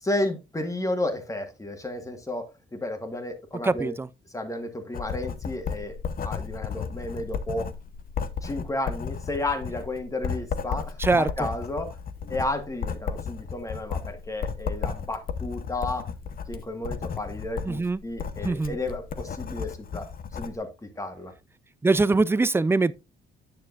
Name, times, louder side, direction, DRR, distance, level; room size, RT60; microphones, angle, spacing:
voice 1, 0.0-2.4 2.7-3.9 4.3-6.0 6.2-7.7 8.4-11.9 12.3-16.0 16.5-20.0 20.3-21.3, left 2 dB, 15° left, 1.6 m, -32 dB
voice 2, 3.6-4.1 11.0-11.3 17.6-18.0 18.4-18.8 21.8-22.9, right 3 dB, 10° right, 0.3 m, -22 dB
Writing, 4.9-20.6, left 6 dB, 45° left, 0.7 m, -34 dB
9.5 x 6.3 x 2.5 m
cardioid pair, 90°, 20 cm